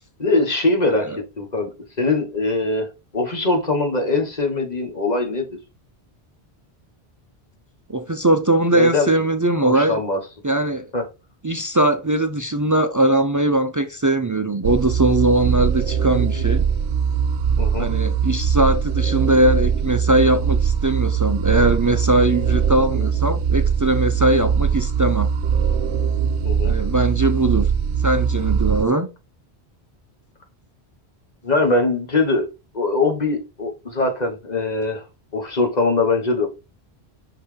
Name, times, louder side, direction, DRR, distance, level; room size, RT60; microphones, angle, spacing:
voice 1, 0.2-2.9 3.1-5.6 8.7-9.2 9.6-10.2 10.9-11.0 17.6-17.9 22.9-23.0 26.4-26.7 31.4-32.5 32.7-35.0 35.3-36.5, left 3 dB, 40° left, 1.4 m, -22 dB
voice 2, 7.9-10.0 10.4-10.9 11.4-16.7 17.8-25.3 26.6-27.7 28.0-29.1, right 2 dB, 30° right, 0.3 m, -20 dB
sound 1, 14.6-28.9, right 7 dB, 80° right, 0.9 m, -21 dB
5.8 x 5.4 x 3.3 m
omnidirectional pair, 1.1 m